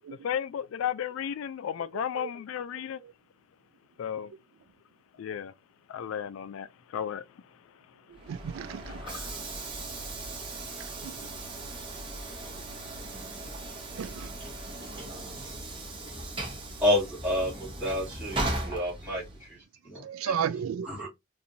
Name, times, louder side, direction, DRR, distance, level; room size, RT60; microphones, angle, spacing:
voice 1, 0.2-3.0 4.0-4.3 5.2-5.5 5.9-7.2 8.8-9.3, left 9 dB, 75° left, 0.3 m, -34 dB
voice 2, 1.9-2.3 8.3-9.0 11.0-11.1 14.0-14.3 20.0-20.9, right 8 dB, 80° right, 0.3 m, -33 dB
Train / Sliding door, 8.1-19.6, right 2 dB, 25° right, 1.0 m, -38 dB
voice 3, 16.8-19.5 19.8-20.3 20.8-21.1, left 1 dB, 5° right, 2.6 m, -29 dB
4.2 x 2.6 x 2.6 m
head